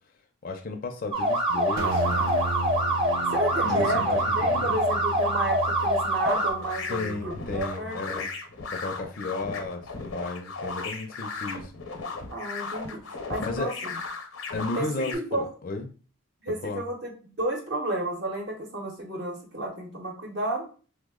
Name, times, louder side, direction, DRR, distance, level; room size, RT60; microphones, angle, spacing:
voice 1, 0.4-2.3 3.7-4.8 6.9-8.3 8.7-11.7 13.4-13.7 14.5-15.9 16.6-16.8, left 3 dB, 45° left, 4 dB, 0.4 m, -34 dB
sound 1, 1.1-6.5, right 1 dB, 30° right, 0.7 m, -25 dB
sound 2, 1.8-8.2, right 3 dB, 75° right, 0.5 m, -35 dB
voice 2, 3.3-8.3 12.3-13.0 13.3-13.7 14.7-15.5 16.4-20.6, right 1 dB, 55° right, 0 dB, 0.8 m, -32 dB
sound 3, 6.2-15.1, left 4 dB, 90° left, 0.7 m, -36 dB
3.2 x 2.0 x 3.6 m, 0.38 s
head